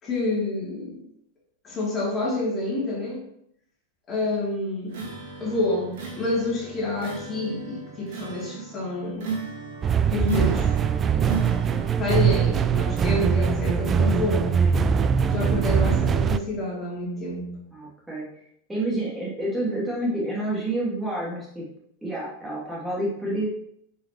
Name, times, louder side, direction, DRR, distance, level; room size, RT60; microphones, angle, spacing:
voice 1, 0.0-1.0 1.6-3.2 4.1-5.1 5.4-9.4 10.1-10.8 11.1-11.3 11.7-14.6 15.3-17.5, left 2 dB, 25° left, -4 dB, 3.1 m, -28 dB
sound 1, 4.9-12.1, right 5 dB, 50° right, 2.4 m, -35 dB
sound 2, 9.8-16.4, right 7 dB, 25° right, 0.4 m, -22 dB
voice 2, 17.7-18.4 18.7-21.7 22.0-23.5, right 1 dB, 10° right, -6 dB, 2.8 m, -29 dB
11.0 x 5.5 x 3.1 m, 0.71 s
figure-of-eight pair, 90°, 0 cm